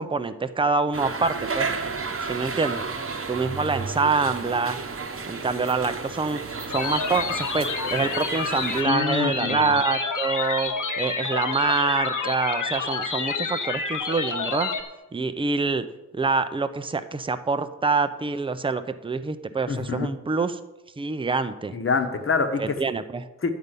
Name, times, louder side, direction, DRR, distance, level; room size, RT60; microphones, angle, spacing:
voice 1, 0.0-1.7 2.2-2.9 3.3-4.8 5.3-6.4 6.7-14.7 15.1-15.8 16.1-20.6 21.0-21.8 22.6-23.3, right 4 dB, 15° right, 11 dB, 0.5 m, -26 dB
sound 1, 0.9-8.8, right 4 dB, 45° right, 1.0 m, -32 dB
sound 2, 6.7-14.8, left 4 dB, 70° left, 1.2 m, -29 dB
voice 2, 8.9-9.7 19.7-20.1 21.7-22.7 23.4-23.5, left 4 dB, 40° left, 6 dB, 1.1 m, -25 dB
10.0 x 5.4 x 8.1 m, 1.0 s
wide cardioid pair, 150°, 32 cm